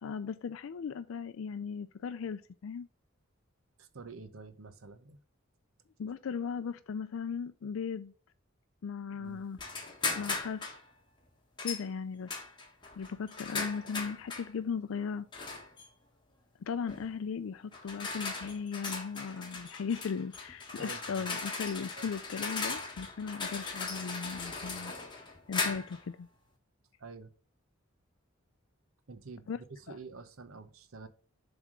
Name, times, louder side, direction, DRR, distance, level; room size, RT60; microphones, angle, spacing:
voice 1, 0.0-2.9 6.0-8.1 8.8-9.6 10.1-10.7 11.6-12.3 13.0-15.3 16.7-24.9 25.5-26.3 29.5-29.6 29.9-30.0, left 6 dB, 75° left, 0.4 m, -37 dB
voice 2, 3.8-5.2 9.2-9.5 20.8-21.3 21.9-22.1 27.0-27.3 29.1-31.1, right 4 dB, 80° right, 0.8 m, -48 dB
sound 1, 9.6-10.8 11.6-11.8 12.3-14.5 15.3-15.8 16.9-17.1 17.7-26.0, left 4 dB, 20° left, 1.3 m, -38 dB
7.3 x 3.5 x 6.1 m
head